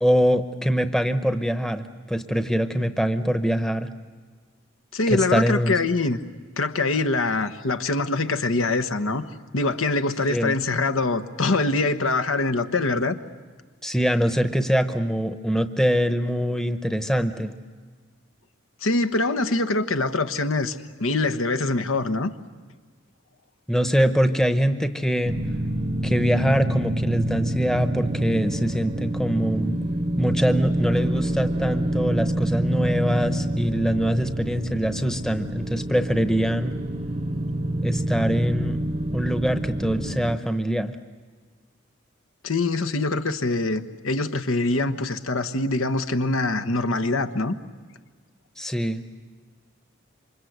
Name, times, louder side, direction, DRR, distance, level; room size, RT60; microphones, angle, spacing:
voice 1, 0.0-3.9 5.1-5.8 10.3-10.5 13.8-17.5 23.7-25.4 26.0-29.8 30.2-36.8 37.8-38.8 39.1-40.9 48.6-49.0, equal, 5° left, 8 dB, 0.8 m, -23 dB
voice 2, 4.9-6.2 6.6-9.2 9.5-13.1 18.8-22.3 42.4-47.6, left 2 dB, 90° left, 9 dB, 1.2 m, -24 dB
sound 1, 25.2-40.4, right 1 dB, 30° right, 0.8 m, -27 dB
27.5 x 25.0 x 8.1 m, 1.5 s
head